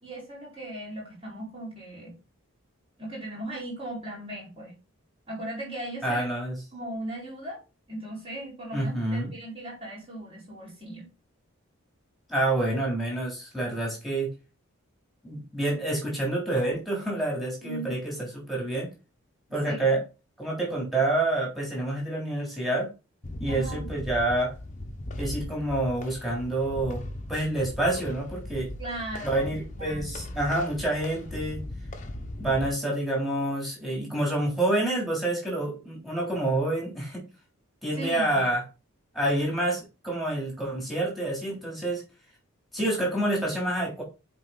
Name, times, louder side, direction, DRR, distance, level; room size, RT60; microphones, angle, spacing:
voice 1, 0.0-2.1 3.0-4.8 5.3-6.3 6.7-7.6 7.9-11.1 17.6-18.0 19.6-20.0 23.5-23.9 28.8-30.2 37.9-38.4, right 1 dB, 25° right, -4 dB, 4.5 m, -38 dB
voice 2, 6.0-6.6 8.7-9.3 12.3-14.3 15.2-18.9 19.5-20.0 20.4-22.9 23.4-24.5 25.2-27.0 27.3-28.7 29.2-31.6 32.4-37.2 37.8-38.6 39.1-42.0 42.7-44.0, right 1 dB, ahead, -3 dB, 3.2 m, -28 dB
sound 1, 23.2-32.7, left 1 dB, 35° left, 0.9 m, -38 dB
7.6 x 4.6 x 4.0 m, 0.29 s
head